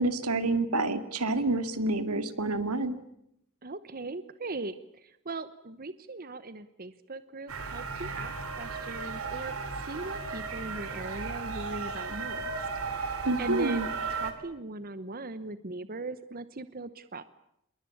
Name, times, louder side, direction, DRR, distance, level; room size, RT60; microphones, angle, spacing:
voice 1, 0.0-3.0 13.2-13.9, right 2 dB, 85° right, 10 dB, 2.3 m, -28 dB
voice 2, 3.6-9.5 9.8-12.5 12.8-17.2, right 2 dB, 40° right, 13 dB, 1.0 m, -39 dB
sound 1, 7.5-14.3, right 4 dB, 70° right, 3.6 m, -35 dB
27.5 x 22.0 x 8.5 m, 0.77 s
head